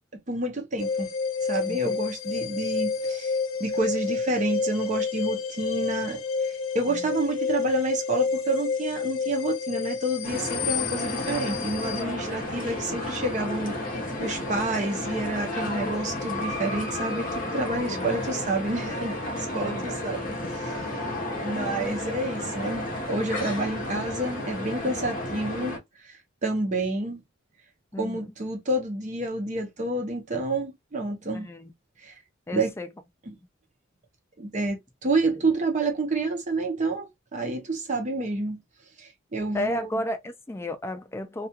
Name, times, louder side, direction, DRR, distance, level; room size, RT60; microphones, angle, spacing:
voice 1, 0.3-1.1 1.4-20.7 21.4-27.2 28.0-31.5 32.0-32.1 32.5-32.7 34.4-34.8 35.0-38.6 39.0-39.9, right 2 dB, 40° right, 0.6 m, -29 dB
sound 1, 0.8-12.0, left 5 dB, 85° left, 0.5 m, -29 dB
voice 2, 1.7-2.0 6.9-7.1 17.9-18.1 19.6-19.9 20.3-20.5 27.9-28.3 31.3-31.7 32.5-32.9 33.3-33.5 39.5-41.5, left 1 dB, 15° left, 0.3 m, -33 dB
sound 2, 10.2-25.8, left 1 dB, 45° left, 0.8 m, -32 dB
2.3 x 2.2 x 2.6 m
head